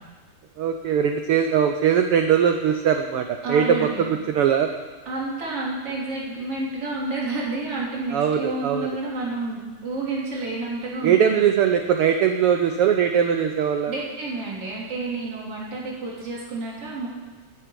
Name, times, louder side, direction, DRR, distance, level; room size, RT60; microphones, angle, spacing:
voice 1, 0.6-4.7 8.1-8.9 11.0-13.9, right 8 dB, 85° right, 6 dB, 1.2 m, -21 dB
voice 2, 3.4-4.0 5.1-11.5 13.9-17.1, right 2 dB, 50° right, -5 dB, 4.1 m, -30 dB
10.5 x 10.0 x 9.2 m, 1.3 s
omnidirectional pair, 3.5 m